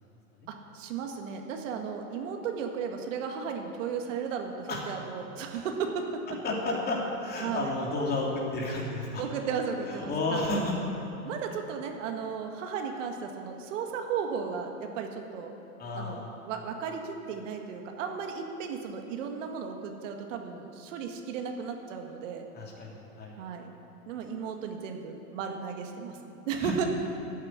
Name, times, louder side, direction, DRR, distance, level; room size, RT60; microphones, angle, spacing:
voice 1, 0.5-6.1 7.4-7.7 9.2-10.6 11.2-15.5 15.9-22.5 23.4-23.7 24.1-26.8, right 6 dB, 55° right, 3 dB, 2.0 m, -35 dB
voice 2, 6.4-9.2 9.9-10.7 15.8-16.3 22.5-23.4 26.6-26.7, left 2 dB, 20° left, -2 dB, 2.9 m, -32 dB
13.5 x 8.7 x 9.9 m, 3.0 s
hypercardioid pair, 135°, 45 cm